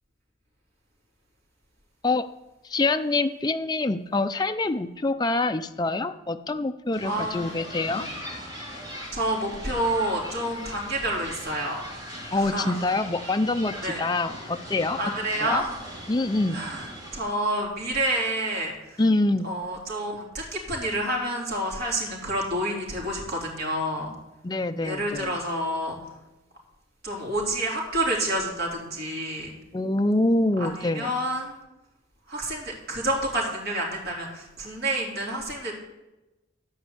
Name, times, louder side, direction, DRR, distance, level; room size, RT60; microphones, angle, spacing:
voice 1, 2.6-8.1 12.3-15.0 15.4-15.6 16.1-16.6 19.0-19.5 24.4-25.3 29.7-31.1, left 2 dB, 20° left, 7 dB, 0.5 m, -25 dB
sound 1, 6.9-17.2, equal, 20° right, 3.8 m, -40 dB
voice 2, 7.0-7.4 9.1-11.8 12.3-12.7 13.8-14.1 15.0-15.8 16.5-19.0 19.4-24.1 24.8-26.0 27.0-29.5 30.6-31.6 32.3-35.7, right 1 dB, 55° right, -3 dB, 3.7 m, -29 dB
13.0 x 5.4 x 8.1 m, 1.0 s
head